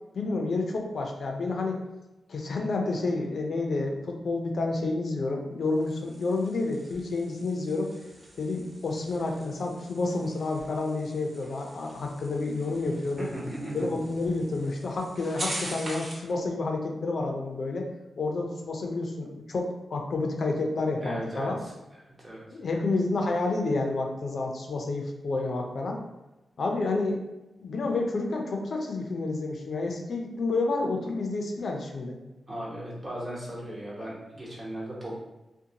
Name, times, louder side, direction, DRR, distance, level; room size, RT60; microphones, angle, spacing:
voice 1, 0.1-1.8 2.3-7.9 8.4-13.3 13.7-17.9 18.2-21.6 22.5-26.0 26.6-27.2 27.6-32.2, left 3 dB, 70° left, 1 dB, 0.5 m, -29 dB
sound 1, 5.6-16.3, right 1 dB, 50° right, 0.8 m, -43 dB
voice 2, 13.2-13.9 21.0-21.7 22.2-22.6 32.5-35.2, right 1 dB, 35° right, -5 dB, 1.1 m, -37 dB
2.6 x 2.1 x 2.8 m, 1.0 s
cardioid pair, 80°, 0 cm